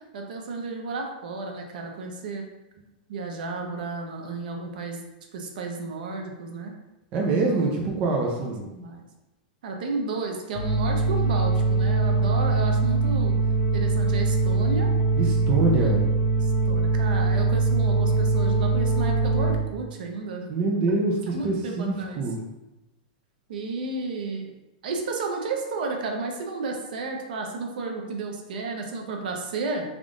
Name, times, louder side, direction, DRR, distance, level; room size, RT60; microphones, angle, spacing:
voice 1, 0.1-2.4 3.1-5.0 5.3-6.7 7.3-7.9 8.3-9.0 9.6-13.3 13.7-14.9 15.8-16.0 16.4-20.5 21.3-22.2 23.5-24.5 24.8-29.8, right 3 dB, 70° right, 2 dB, 0.7 m, -32 dB
voice 2, 7.1-8.6 15.2-16.0 20.5-22.4, right 3 dB, 30° right, -1 dB, 0.5 m, -25 dB
sound 1, 10.5-19.5, right 3 dB, 55° left, 0.7 m, -22 dB
3.6 x 2.4 x 3.6 m, 0.99 s
supercardioid pair, 160°, 5 cm